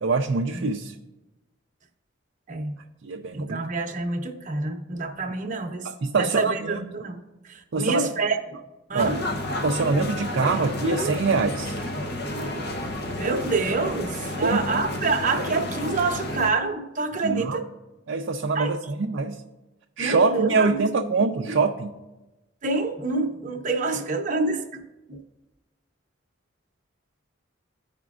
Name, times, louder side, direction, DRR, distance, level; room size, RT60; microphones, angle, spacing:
voice 1, 0.0-0.9 3.0-3.6 5.8-6.8 7.7-8.1 8.9-9.2 9.6-11.8 14.4-14.8 17.2-17.6 18.1-19.4 20.0-21.9, right 4 dB, 65° right, 2 dB, 0.5 m, -24 dB
voice 2, 3.3-5.9 6.1-8.4 8.9-9.2 13.2-17.7 18.5-18.7 20.0-20.9 21.5-21.6 22.6-24.8 25.1-25.2, right 3 dB, 40° right, 4 dB, 0.8 m, -27 dB
sound 1, 9.0-16.5, left 1 dB, 55° left, 0.8 m, -31 dB
15.0 x 5.1 x 2.4 m, 1.1 s
head